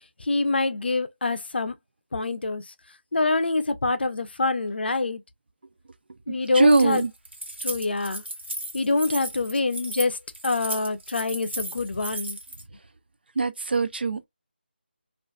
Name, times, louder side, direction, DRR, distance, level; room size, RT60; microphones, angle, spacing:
voice 1, 0.2-1.7 2.1-2.6 3.1-5.2 6.3-7.0 7.6-8.2 8.7-10.2 10.4-12.4, left 3 dB, 70° left, 0.5 m, -25 dB
voice 2, 6.3-7.1 13.4-14.2, right 3 dB, 65° right, 0.4 m, -22 dB
Keys jangling, 6.6-12.6, right 1 dB, 90° right, 1.1 m, -35 dB
2.4 x 2.3 x 2.2 m
figure-of-eight pair, 170°, 6 cm